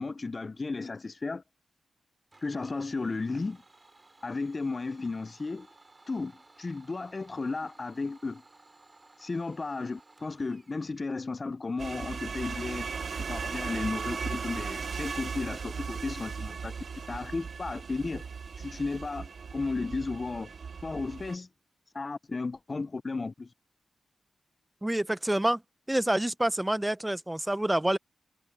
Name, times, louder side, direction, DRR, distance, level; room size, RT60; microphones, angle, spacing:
voice 1, 0.0-1.4 2.4-3.6 4.2-5.7 6.1-8.4 9.2-12.9 13.2-16.8 17.1-18.2 18.6-20.5 20.8-21.5 21.9-23.5, left 3 dB, 40° left, 0.5 m, -34 dB
Domestic sounds home sounds, 2.3-11.0, right 2 dB, 30° right, 2.8 m, -58 dB
sound 1, 11.8-21.4, right 5 dB, 60° right, 0.5 m, -37 dB
voice 2, 24.8-25.6 25.9-28.0, right 1 dB, 10° right, 0.6 m, -27 dB
cardioid pair, 55°, 0 cm